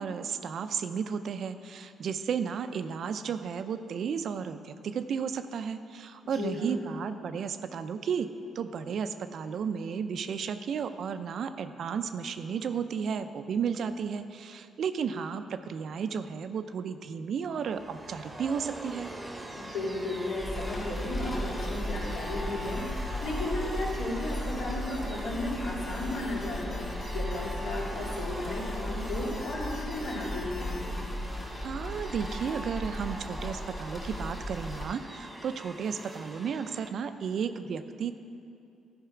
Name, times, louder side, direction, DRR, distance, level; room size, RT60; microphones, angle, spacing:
voice 1, 0.0-8.3 8.6-19.1 31.6-38.1, right 6 dB, 60° right, 10 dB, 0.5 m, -33 dB
voice 2, 6.2-6.8 19.6-30.9, left 2 dB, 70° left, -5 dB, 2.5 m, -35 dB
sound 1, 17.5-36.9, right 1 dB, 15° right, 0.9 m, -43 dB
sound 2, 20.4-34.9, left 1 dB, 25° left, 2.4 m, -36 dB
sound 3, 21.3-31.2, left 3 dB, 55° left, 1.1 m, -48 dB
12.5 x 4.7 x 5.9 m, 2.6 s
cardioid pair, 90°, 0 cm